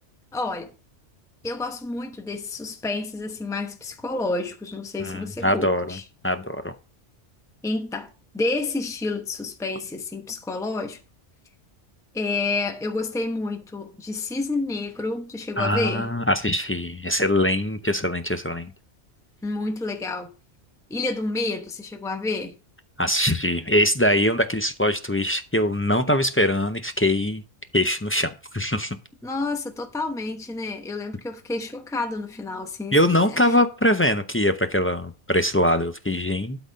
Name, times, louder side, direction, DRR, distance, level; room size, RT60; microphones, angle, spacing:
voice 1, 0.3-0.7 1.4-6.0 7.6-11.0 12.1-16.1 19.4-20.3 20.9-22.5 29.2-33.6, left 3 dB, 5° left, 0.9 m, -29 dB
voice 2, 5.0-6.0 6.2-6.7 15.6-18.7 23.0-27.4 27.7-29.0 32.9-36.6, left 1 dB, 20° left, 0.3 m, -22 dB
12.0 x 4.1 x 5.2 m
omnidirectional pair, 1.2 m